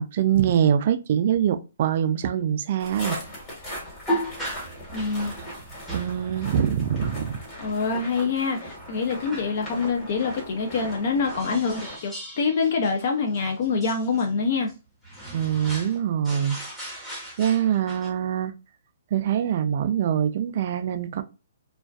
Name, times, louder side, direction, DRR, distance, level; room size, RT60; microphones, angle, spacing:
voice 1, 0.0-3.2 5.9-7.4 15.3-16.6 16.9-18.5 19.1-21.2, right 9 dB, 50° right, 0.3 m, -24 dB
sound 1, 2.8-12.0, equal, 25° left, 1.2 m, -39 dB
sound 2, 4.1-6.2 7.0-7.2 9.3-9.6 11.3-14.3 14.7-14.8 15.0-16.0 16.2-18.1, equal, 5° left, 0.7 m, -35 dB
voice 2, 4.9-5.3 7.6-14.7, left 4 dB, 50° left, 0.4 m, -25 dB
2.4 x 2.2 x 2.3 m
hypercardioid pair, 150°, 0 cm